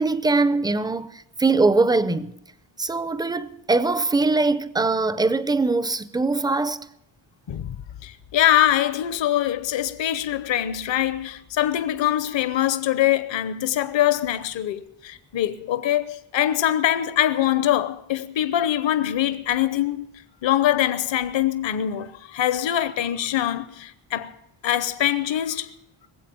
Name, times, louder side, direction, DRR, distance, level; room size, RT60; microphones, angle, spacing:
voice 1, 0.0-2.3 2.8-6.8, right 3 dB, 10° right, 0.5 m, -22 dB
voice 2, 8.0-20.0 20.4-24.4 24.6-25.7, left 12 dB, 65° left, 0.9 m, -23 dB
21.0 x 8.0 x 7.1 m
wide cardioid pair, 145°, 49 cm